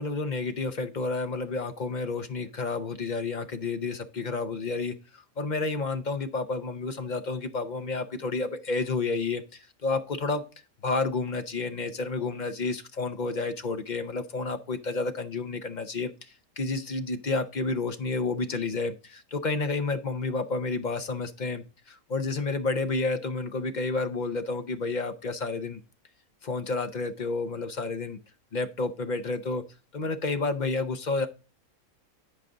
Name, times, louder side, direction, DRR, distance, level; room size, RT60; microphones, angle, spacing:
voice 1, 0.0-10.4 10.8-25.8 26.4-28.2 28.5-29.6 29.9-31.3, left 3 dB, 45° left, 9 dB, 0.6 m, -30 dB
10.5 x 4.9 x 3.9 m, 0.33 s
omnidirectional pair, 1.5 m